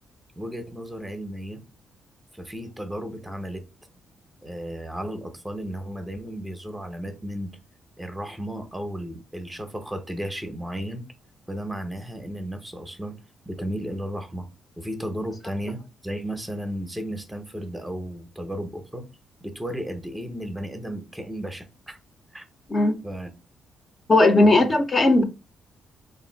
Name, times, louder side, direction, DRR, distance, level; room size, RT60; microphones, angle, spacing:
voice 1, 0.4-1.6 2.3-3.6 4.4-7.5 8.0-11.0 11.5-13.2 13.5-14.4 14.8-19.0 19.4-22.0 22.3-22.4 23.0-23.3 24.4-24.7, equal, 10° right, 0.7 m, -34 dB
voice 2, 24.1-25.2, left 2 dB, 35° left, 0.6 m, -17 dB
3.2 x 2.5 x 4.4 m
cardioid pair, 105°, 0 cm